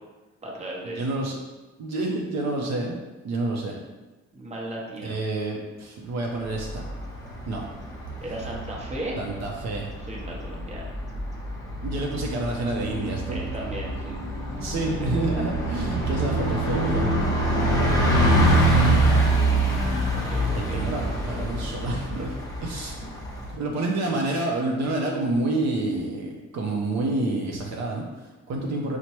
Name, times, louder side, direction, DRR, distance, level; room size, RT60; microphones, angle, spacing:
voice 1, 0.4-1.0 4.3-5.2 8.2-9.2 10.0-10.9 13.3-14.2 14.6-15.1 20.1-20.9 23.0-23.1, right 1 dB, 20° right, -2 dB, 0.8 m, -36 dB
voice 2, 1.0-1.4 1.8-3.8 5.0-6.8 7.5-7.6 9.2-9.9 11.8-13.4 14.6-17.1 20.5-22.3 22.6-23.0 23.5-29.0, right 2 dB, 60° right, -1 dB, 0.6 m, -28 dB
Bus, 6.4-23.5, right 1 dB, 10° left, 0.9 m, -25 dB
4.4 x 2.1 x 2.9 m, 1.2 s
cardioid pair, 90°, 30 cm